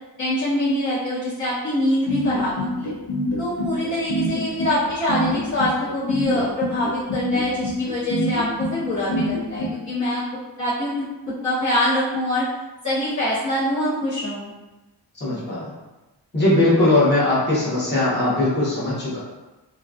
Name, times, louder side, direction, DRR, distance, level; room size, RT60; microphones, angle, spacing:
voice 1, 0.2-2.9 3.4-10.2 10.6-11.0 11.4-12.4 12.8-14.5, left 1 dB, 40° left, -13 dB, 1.0 m, -24 dB
sound 1, 2.1-9.7, equal, 80° left, 0.7 m, -25 dB
voice 2, 15.2-15.7 16.3-19.2, left 2 dB, 25° left, -9 dB, 1.1 m, -20 dB
3.0 x 2.3 x 2.4 m, 1.1 s
wide cardioid pair, 120°, 43 cm